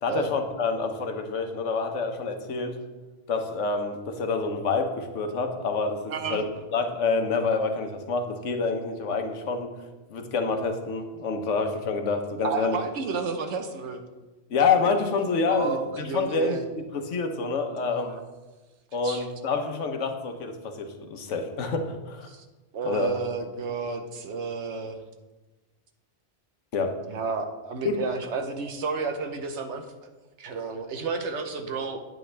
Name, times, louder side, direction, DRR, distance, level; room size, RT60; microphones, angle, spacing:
voice 1, 0.0-2.8 3.3-6.4 6.7-9.7 10.1-12.8 14.5-16.6 16.9-18.2 18.9-22.3 22.8-23.1 26.7-26.9 27.8-28.0, left 4 dB, 85° left, 6 dB, 1.3 m, -27 dB
voice 2, 6.1-6.4 12.4-14.0 15.5-16.6 18.1-18.2 19.0-19.3 22.3-22.4 22.7-25.0 27.1-30.1 30.4-32.0, right 4 dB, 75° right, 6 dB, 1.2 m, -31 dB
9.1 x 8.9 x 3.3 m, 1.2 s
omnidirectional pair, 1.2 m